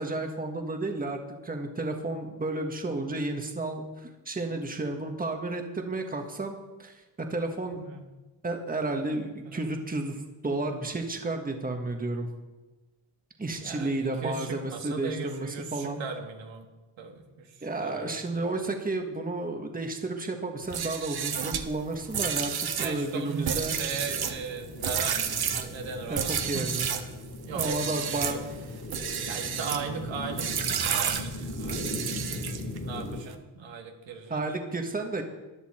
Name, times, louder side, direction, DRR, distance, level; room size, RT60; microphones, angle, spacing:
voice 1, 0.0-7.8 8.4-12.3 13.4-16.0 17.6-22.5 22.8-23.8 26.1-26.9 27.5-28.5 34.3-35.2, right 2 dB, 20° right, 4 dB, 1.5 m, -32 dB
voice 2, 13.6-16.7 17.0-18.5 22.8-26.7 27.5-28.4 29.2-32.4 32.8-34.5, right 5 dB, 75° right, 3 dB, 1.8 m, -38 dB
sound 1, 20.6-27.1 27.5-28.4 28.8-29.9 30.4-32.8, right 7 dB, 55° right, 1.2 m, -31 dB
sound 2, 23.5-33.2, left 2 dB, 40° left, 3.6 m, -39 dB
14.0 x 10.0 x 4.4 m, 1.2 s
cardioid pair, 90°, 46 cm